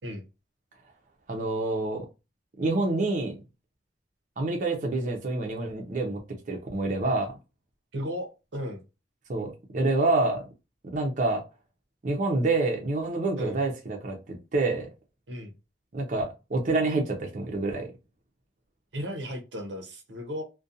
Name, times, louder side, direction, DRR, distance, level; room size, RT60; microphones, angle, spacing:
voice 1, 1.3-2.1 2.6-3.3 4.4-6.2 6.5-7.3 9.3-10.4 10.9-11.4 12.0-14.9 15.9-17.9, right 2 dB, 45° right, 0.5 m, -27 dB
voice 2, 7.9-8.8 13.4-13.6 15.3-15.5 18.9-20.4, equal, 85° right, 0.7 m, -35 dB
2.4 x 2.2 x 2.6 m
head